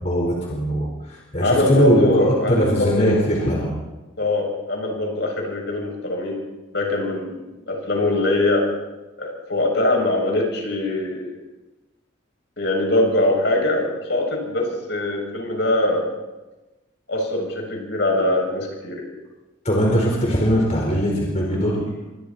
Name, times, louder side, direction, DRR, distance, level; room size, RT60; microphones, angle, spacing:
voice 1, 0.0-3.7 19.6-21.9, equal, 35° left, -2 dB, 4.5 m, -20 dB
voice 2, 1.4-3.2 4.2-6.4 6.7-8.7 9.2-11.3 12.6-16.1 17.1-19.1, left 1 dB, 60° left, 1 dB, 7.0 m, -22 dB
28.5 x 24.5 x 4.4 m, 1.1 s
head